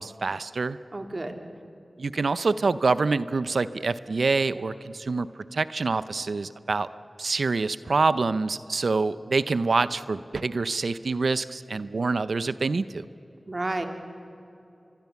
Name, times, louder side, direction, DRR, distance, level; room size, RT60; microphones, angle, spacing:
voice 1, 0.0-0.8 2.0-5.3 5.5-6.9 7.2-13.0, right 3 dB, 85° right, 15 dB, 0.6 m, -26 dB
voice 2, 0.9-1.4 13.5-13.9, right 2 dB, 50° right, 5 dB, 2.7 m, -31 dB
25.5 x 22.5 x 7.1 m, 3.0 s
cardioid pair, 40°, 0 cm